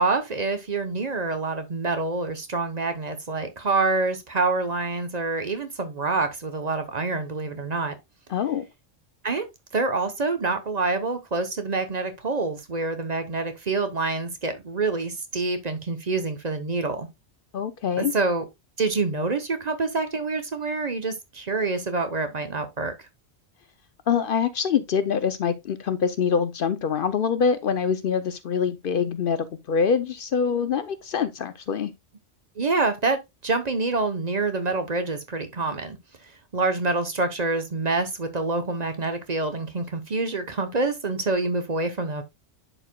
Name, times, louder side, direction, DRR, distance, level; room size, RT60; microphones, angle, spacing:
voice 1, 0.0-7.9 9.2-9.5 9.7-17.1 18.0-18.4 18.8-22.9 32.6-36.0 36.5-42.2, right 3 dB, 40° right, 0.9 m, -26 dB
voice 2, 8.3-8.6 17.5-18.1 24.1-31.9, left 6 dB, 60° left, 0.7 m, -25 dB
11.0 x 4.7 x 2.2 m
omnidirectional pair, 1.1 m